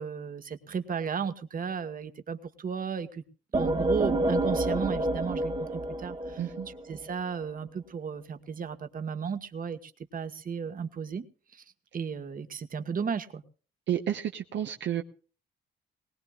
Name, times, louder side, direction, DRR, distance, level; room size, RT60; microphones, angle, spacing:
voice 1, 0.0-3.2 3.5-6.4 6.9-11.3 11.5-11.6 11.9-13.4, right 6 dB, 45° right, 9 dB, 1.6 m, -34 dB
sound 1, 3.5-7.1, right 1 dB, 25° right, 1.2 m, -29 dB
voice 2, 6.4-6.7 13.9-15.0, right 10 dB, 65° right, 4 dB, 1.2 m, -31 dB
21.0 x 18.5 x 2.5 m, 0.39 s
cardioid pair, 90°, 20 cm